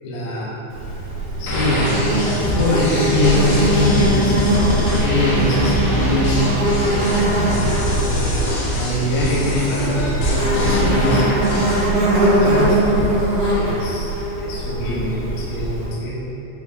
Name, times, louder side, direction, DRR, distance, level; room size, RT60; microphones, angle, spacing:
voice 1, 0.0-0.7 1.4-6.5 6.9-7.6 7.9-12.8 13.6-16.2, left 1 dB, 85° left, -5 dB, 3.8 m, -24 dB
Insect, 0.7-15.9, right 1 dB, 65° right, 3.4 m, -21 dB
sound 1, 1.5-11.8, left 1 dB, 70° left, 2.7 m, -24 dB
sound 2, 4.5-8.8, right 1 dB, 80° right, 2.7 m, -27 dB
9.8 x 4.9 x 2.3 m, 3.0 s
omnidirectional pair, 5.9 m